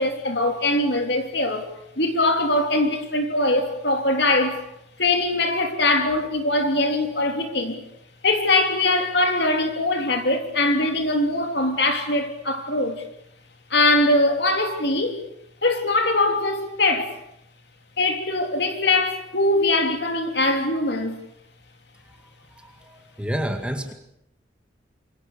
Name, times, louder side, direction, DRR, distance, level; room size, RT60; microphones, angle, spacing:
voice 1, 0.0-1.7 2.0-4.6 5.0-7.8 8.2-13.0 13.7-15.2 15.6-17.1 18.0-21.2, left 2 dB, 60° left, 3.4 m, -22 dB
voice 2, 23.2-23.9, equal, 5° right, 2.1 m, -27 dB
27.0 x 23.5 x 6.9 m
head